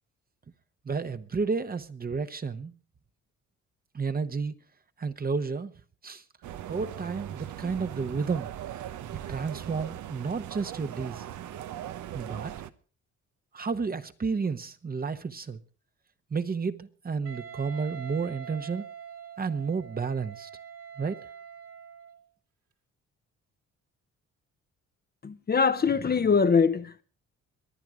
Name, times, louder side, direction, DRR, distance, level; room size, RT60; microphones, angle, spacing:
voice 1, 0.8-2.7 3.9-4.5 5.0-5.7 6.0-6.2 6.7-8.5 9.3-11.2 12.1-12.5 13.5-15.6 16.3-18.9 19.4-20.5 21.0-21.2, right 5 dB, 30° right, 1.1 m, -31 dB
sound 1, 6.4-12.7, right 11 dB, 75° right, 1.0 m, -39 dB
Wind instrument woodwind instrument, 17.2-22.2, right 8 dB, 55° right, 2.3 m, -44 dB
voice 2, 25.2-27.0, left 5 dB, 30° left, 0.9 m, -23 dB
23.5 x 9.1 x 4.9 m
cardioid pair, 90°, 30 cm